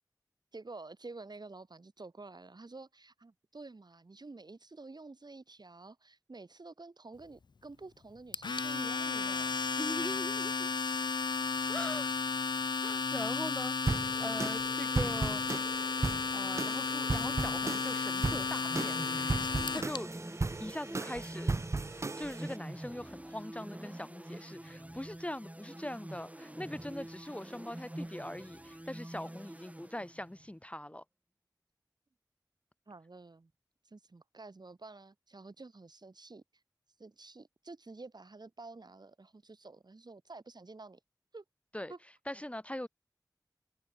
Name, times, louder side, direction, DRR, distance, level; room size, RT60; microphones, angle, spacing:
voice 1, 0.5-9.6 10.0-10.2 32.9-33.5 33.8-36.4 37.0-41.0 41.3-41.4 41.9-42.0, right 3 dB, 70° right, 6.8 m, -50 dB
Domestic sounds home sounds, 8.3-20.0, left 4 dB, 85° left, 0.5 m, -33 dB
voice 2, 9.8-10.7 11.7-12.1 12.5-13.7 14.0-15.4 16.3-19.5 19.7-20.1 20.6-21.5 22.1-31.0 41.7-41.9 42.3-42.9, left 1 dB, 15° left, 1.1 m, -42 dB
sound 1, 13.9-22.6, right 3 dB, 40° right, 0.4 m, -36 dB
sound 2, 18.6-30.5, right 1 dB, 20° right, 5.6 m, -46 dB
open air
wide cardioid pair, 50°, 7 cm